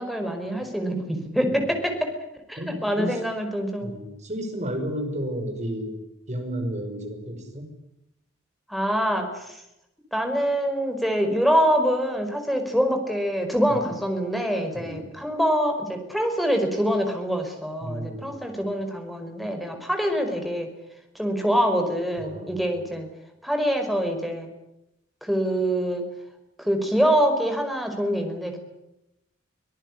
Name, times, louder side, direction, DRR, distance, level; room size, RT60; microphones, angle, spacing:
voice 1, 0.0-2.1 2.5-3.9 8.7-9.6 10.1-20.7 21.1-23.1 23.4-24.5 25.2-26.0 26.6-28.6, equal, ahead, 4 dB, 5.1 m, -25 dB
voice 2, 2.6-3.2 3.8-6.0 6.3-7.7 13.7-13.8 14.7-15.0 17.8-18.4 22.2-22.6, equal, 35° right, 5 dB, 5.9 m, -32 dB
25.0 x 18.5 x 10.0 m, 0.87 s
head